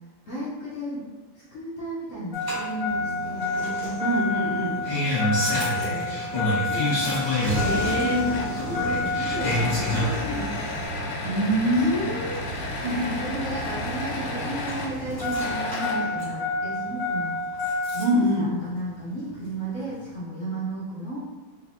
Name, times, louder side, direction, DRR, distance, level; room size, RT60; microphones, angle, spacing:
voice 1, 0.3-1.1 1.5-3.5 4.6-5.0 5.3-6.2 6.5-7.0 7.9-10.7 11.2-11.3 11.8-11.9 12.7-17.4 17.9-21.2, right 1 dB, 55° left, -8 dB, 0.9 m, -34 dB
Engine starting, 2.3-18.2 19.5-19.6, left 1 dB, 15° left, 1.1 m, -28 dB
Human voice / Acoustic guitar, 2.9-10.9, equal, 60° right, 1.9 m, -40 dB
voice 2, 4.0-4.8 7.5-8.3 11.2-12.4 12.8-13.4 18.0-18.5, equal, 85° right, -1 dB, 1.6 m, -25 dB
sound 1, 8.3-8.7 9.4-15.0 15.4-16.3, left 2 dB, 80° left, 1.4 m, -33 dB
4.0 x 3.2 x 2.6 m, 1.3 s
omnidirectional pair, 2.3 m